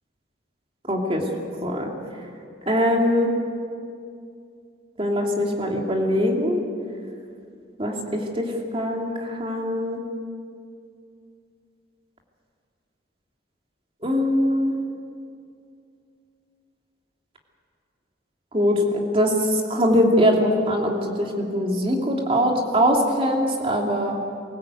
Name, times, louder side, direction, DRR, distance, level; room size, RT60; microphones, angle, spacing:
voice 1, 0.9-1.2 1.6-1.9 2.7-3.3 5.0-6.6 7.8-8.5 8.7-10.0 14.0-14.8 18.5-24.2, equal, 30° right, 0 dB, 2.8 m, -22 dB
24.5 x 16.0 x 8.2 m, 2.4 s
head